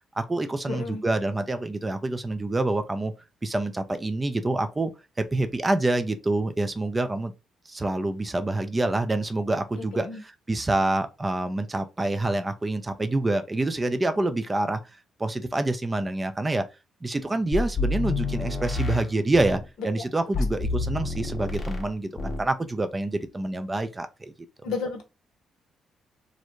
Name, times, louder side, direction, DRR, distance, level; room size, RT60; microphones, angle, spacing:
voice 1, 0.2-3.1 3.4-4.9 5.2-7.3 7.7-14.8 15.2-16.7 17.0-24.3, right 2 dB, 25° right, 0.4 m, -27 dB
voice 2, 0.7-1.0 9.8-10.2 20.4-20.5 24.6-25.0, left 4 dB, 75° left, 0.6 m, -32 dB
sound 1, 17.5-19.7 20.3-21.9 22.2-22.5, left 3 dB, 35° left, 1.0 m, -28 dB
2.5 x 2.0 x 2.9 m
hypercardioid pair, 50°, 0 cm